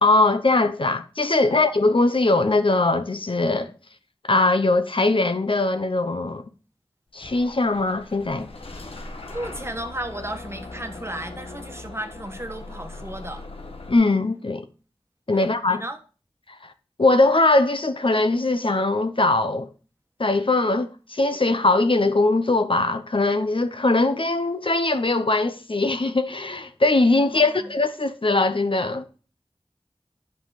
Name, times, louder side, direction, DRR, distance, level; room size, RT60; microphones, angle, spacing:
voice 1, 0.0-3.7 4.2-6.4 7.1-8.5 13.9-14.7 15.3-15.8 17.0-19.7 20.2-29.1, left 2 dB, 65° left, 0.8 m, -21 dB
Bus / Engine starting, 7.2-13.9, left 2 dB, 85° left, 1.2 m, -39 dB
voice 2, 9.3-13.4 15.3-16.0 27.3-27.7, right 1 dB, 25° right, 1.3 m, -34 dB
10.0 x 5.7 x 4.9 m
wide cardioid pair, 40°, 10 cm